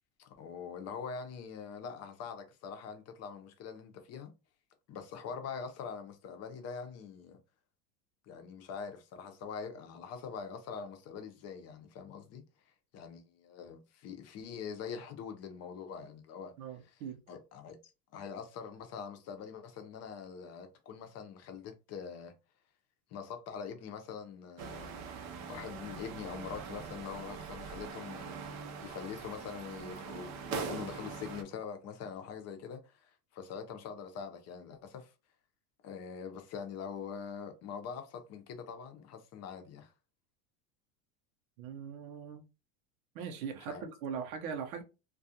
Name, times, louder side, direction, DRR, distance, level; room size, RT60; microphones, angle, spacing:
voice 1, 0.2-4.3 4.9-7.4 8.3-12.4 12.9-16.5 16.8-17.0 17.3-17.8 18.1-22.3 23.1-25.1 25.4-28.4 28.8-35.1 35.8-39.9 43.7-43.9, left 6 dB, 40° left, 0.6 m, -44 dB
voice 2, 16.6-17.2 41.6-42.4 43.1-44.8, right 7 dB, 80° right, 0.7 m, -40 dB
sound 1, 24.6-31.4, right 5 dB, 40° right, 0.6 m, -42 dB
2.4 x 2.3 x 2.7 m
supercardioid pair, 115°, 41 cm